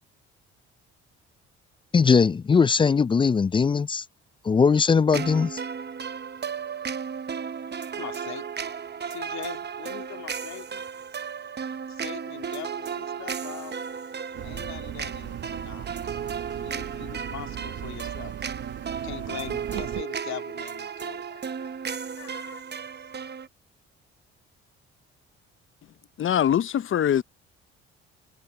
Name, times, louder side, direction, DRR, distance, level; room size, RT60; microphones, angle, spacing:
voice 1, 1.9-4.0 4.4-5.6, left 5 dB, 20° left, 0.3 m, -20 dB
sound 1, 5.1-23.5, right 7 dB, 35° right, 1.0 m, -34 dB
voice 2, 7.9-8.4 9.0-10.8 11.9-13.7 14.4-15.9 16.5-23.1, left 13 dB, 70° left, 2.9 m, -42 dB
sound 2, 14.3-20.0, right 11 dB, 55° right, 1.2 m, -37 dB
voice 3, 26.2-27.2, left 10 dB, 45° left, 0.7 m, -22 dB
supercardioid pair, 65°, 29 cm